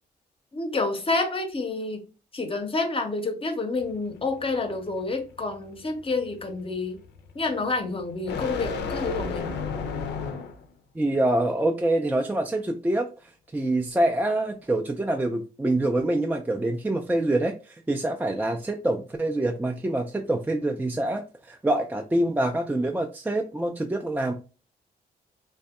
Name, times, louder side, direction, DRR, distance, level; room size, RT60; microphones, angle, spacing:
voice 1, 0.5-2.0 2.3-7.0 7.3-9.5, left 3 dB, 30° left, 0.6 m, -28 dB
sound 1, 3.8-10.7, left 5 dB, 85° left, 0.4 m, -34 dB
voice 2, 11.0-13.1 13.5-24.3, right 1 dB, 10° right, 0.3 m, -25 dB
2.6 x 2.2 x 2.3 m
cardioid pair, 65°, 17 cm